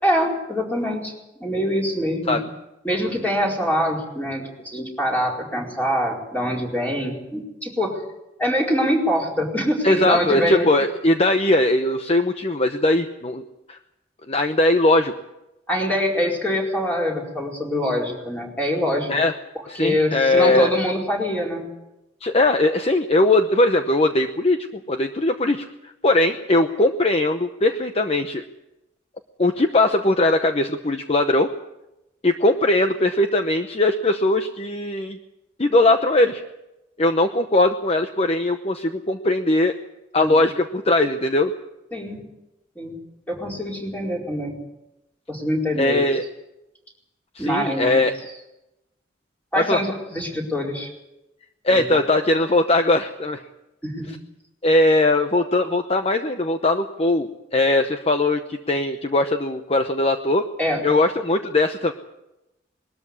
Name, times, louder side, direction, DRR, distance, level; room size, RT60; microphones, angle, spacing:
voice 1, 0.0-1.1 1.4-2.4 2.8-8.0 8.4-10.7 15.7-19.1 19.7-21.7 40.2-40.4 41.9-42.2 42.8-43.0 43.3-44.6 45.3-46.1 47.4-48.0 49.5-50.9 51.7-52.0 53.8-54.1 60.6-60.8, equal, 10° left, -1 dB, 4.5 m, -24 dB
voice 2, 9.8-13.4 13.7-13.8 14.3-15.1 19.1-19.3 19.7-20.7 22.2-28.4 29.4-31.5 32.2-35.2 35.6-36.4 37.0-39.7 40.1-41.5 45.8-46.2 47.3-48.1 49.6-49.8 51.6-53.4 54.6-60.5 60.8-61.9, left 2 dB, 35° left, 7 dB, 0.9 m, -20 dB
21.0 x 13.0 x 9.7 m, 0.93 s
head